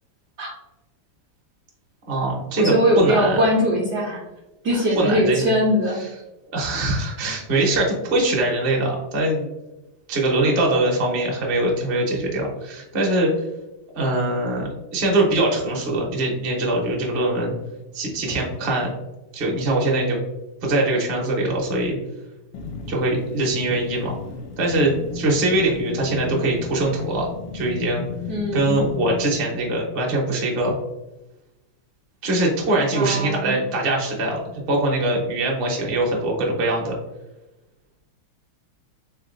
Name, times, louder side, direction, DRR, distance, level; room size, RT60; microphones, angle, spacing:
voice 1, 2.1-3.4 4.7-5.5 6.0-6.1 6.5-9.5 10.1-13.5 14.0-17.5 17.9-18.9 19.3-20.2 20.6-22.0 22.9-24.1 24.6-27.3 27.5-28.0 28.5-30.7 32.2-36.9, right 2 dB, 50° right, -2 dB, 0.6 m, -22 dB
voice 2, 2.6-4.2 4.6-6.0 28.3-28.8 32.9-33.6, equal, 70° right, -3 dB, 1.0 m, -21 dB
sound 1, 22.5-29.3, left 6 dB, 85° left, 1.7 m, -34 dB
4.1 x 3.7 x 2.5 m, 1.0 s
omnidirectional pair, 2.4 m